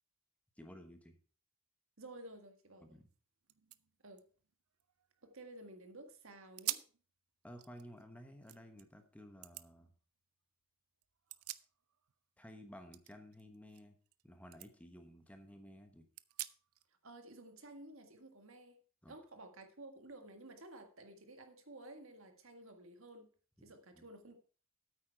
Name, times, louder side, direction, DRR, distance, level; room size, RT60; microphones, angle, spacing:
voice 1, 0.6-1.2 2.8-3.1 7.4-9.9 12.4-14.0 14.2-16.0 19.0-19.1 23.9-24.0, equal, 5° left, 1.1 m, -54 dB
voice 2, 2.0-3.0 4.0-4.2 5.2-6.8 17.0-18.8 19.1-23.3 23.6-24.3, right 2 dB, 65° right, 1.7 m, -53 dB
sound 1, 3.1-3.2 3.4-5.6 6.1-6.2 6.6-7.0 7.4-8.8 9.4-9.7 11.0-12.1 12.4-14.2 14.5-14.7 15.2-15.3 16.1-16.9, right 16 dB, 80° right, 0.5 m, -47 dB
8.9 x 8.7 x 4.6 m
head